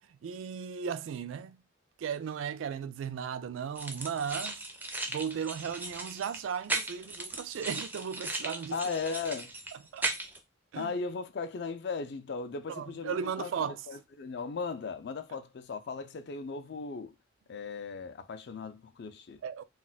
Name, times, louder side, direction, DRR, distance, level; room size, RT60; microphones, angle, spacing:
voice 1, 0.2-1.6 2.0-4.6 5.1-8.8 9.9-10.1 10.7-10.9 12.7-13.8 19.4-19.6, right 7 dB, 85° right, 0.3 m, -36 dB
sound 1, 3.8-10.4, right 2 dB, 10° right, 0.4 m, -37 dB
voice 2, 8.7-9.5 10.7-17.2 17.5-19.4, left 4 dB, 60° left, 0.4 m, -37 dB
2.3 x 2.2 x 3.9 m
head